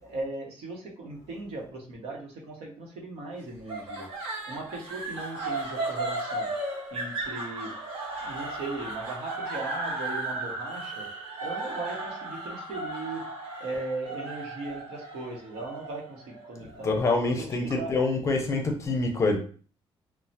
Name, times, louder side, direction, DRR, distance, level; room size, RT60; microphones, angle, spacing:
voice 1, 0.0-4.1 4.5-6.5 6.9-7.7 8.2-11.1 11.4-13.2 13.6-16.9 17.3-18.0, right 2 dB, 85° right, 0 dB, 0.9 m, -38 dB
sound 1, 3.7-16.8, right 2 dB, 65° right, 1.1 m, -35 dB
voice 2, 16.8-19.4, left 3 dB, 30° left, 3 dB, 0.5 m, -26 dB
3.1 x 2.1 x 2.7 m, 0.41 s
cardioid pair, 160°, 10 cm